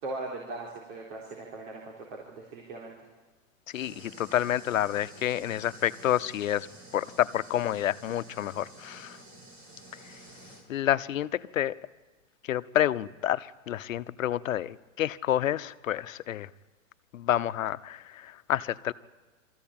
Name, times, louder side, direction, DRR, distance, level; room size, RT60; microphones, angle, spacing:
voice 1, 0.0-3.1, right 2 dB, 50° right, -1 dB, 3.9 m, -39 dB
voice 2, 3.7-6.7 6.9-9.2 10.7-11.8 12.5-16.5 17.1-18.9, left 12 dB, 80° left, 14 dB, 0.9 m, -29 dB
sound 1, 3.7-10.6, right 2 dB, 20° right, 3.2 m, -50 dB
25.0 x 14.5 x 8.8 m, 1.3 s
hypercardioid pair, 160°, 39 cm